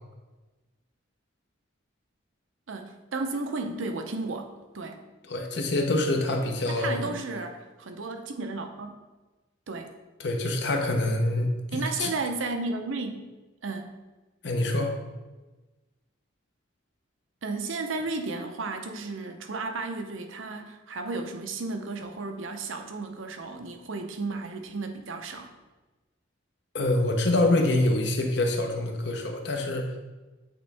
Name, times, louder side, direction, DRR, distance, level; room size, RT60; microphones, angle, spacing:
voice 1, 2.7-5.0 6.7-9.0 9.7-9.9 11.7-13.2 13.6-14.0 17.4-25.5, right 3 dB, 75° right, 5 dB, 0.7 m, -33 dB
voice 2, 5.3-7.1 10.2-12.1 14.4-14.9 26.7-29.9, left 2 dB, 55° left, 3 dB, 0.8 m, -26 dB
7.9 x 3.5 x 3.4 m, 1.2 s
head